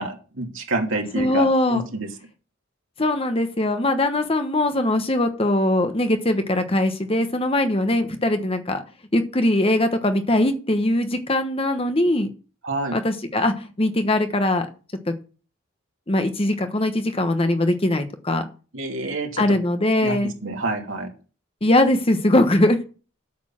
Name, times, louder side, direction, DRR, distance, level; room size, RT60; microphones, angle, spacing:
voice 1, 0.0-1.4 1.7-2.1 12.6-13.0 18.7-19.4 20.0-21.1, right 2 dB, 75° right, 1 dB, 2.8 m, -27 dB
voice 2, 1.1-1.8 3.0-8.8 9.1-12.3 12.9-14.7 15.1-15.2 16.1-18.5 19.4-20.3 21.6-22.8, left 1 dB, 30° left, 8 dB, 1.1 m, -21 dB
8.6 x 7.0 x 7.3 m, 0.37 s
head